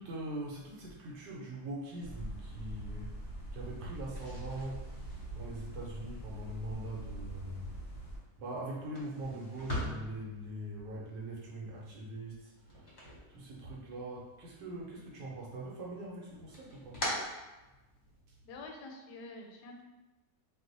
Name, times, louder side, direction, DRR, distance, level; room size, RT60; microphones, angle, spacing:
voice 1, 0.0-3.1 3.5-4.9 5.3-7.7 8.4-12.9 13.3-17.0, right 1 dB, 85° right, -4 dB, 1.3 m, -42 dB
sound 1, 2.0-8.2, right 1 dB, 15° right, 0.9 m, -44 dB
sound 2, 4.1-14.0 14.3-15.2 15.6-18.2, left 1 dB, 35° left, 0.7 m, -44 dB
voice 2, 18.4-19.8, left 2 dB, 75° left, 2 dB, 1.1 m, -47 dB
3.0 x 2.0 x 3.8 m, 1.1 s
omnidirectional pair, 1.8 m